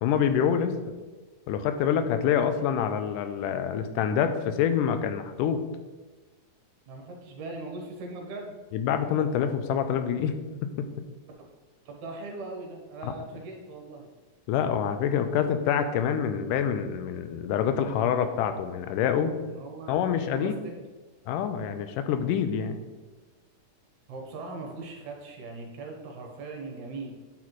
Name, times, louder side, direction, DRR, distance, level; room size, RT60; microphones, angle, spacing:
voice 1, 0.0-0.9 1.5-5.6 8.7-10.3 13.0-13.1 14.5-19.3 19.9-20.6 21.3-22.7, left 8 dB, 85° left, 9 dB, 2.1 m, -26 dB
voice 2, 6.9-8.5 11.9-14.1 19.5-20.7 24.1-27.1, right 3 dB, 70° right, 1 dB, 2.3 m, -40 dB
8.4 x 4.2 x 4.6 m, 1.3 s
omnidirectional pair, 3.7 m